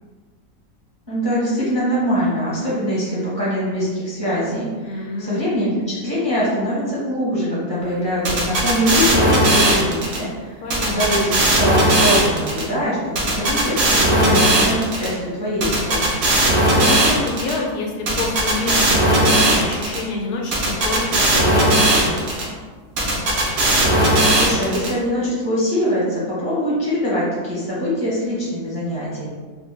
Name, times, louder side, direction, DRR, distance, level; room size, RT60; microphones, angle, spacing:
voice 1, 1.1-10.6 10.9-16.1 24.4-29.3, equal, 25° right, -9 dB, 0.6 m, -23 dB
voice 2, 4.8-5.4 10.6-11.2 16.7-22.5, left 2 dB, 85° left, 0 dB, 1.2 m, -27 dB
sound 1, 8.2-10.2 10.7-12.6 13.2-15.1 15.6-17.5 18.1-20.0 20.5-22.4 23.0-24.9, right 1 dB, 55° right, 0.8 m, -17 dB
3.8 x 2.1 x 3.1 m, 1.4 s
omnidirectional pair, 1.6 m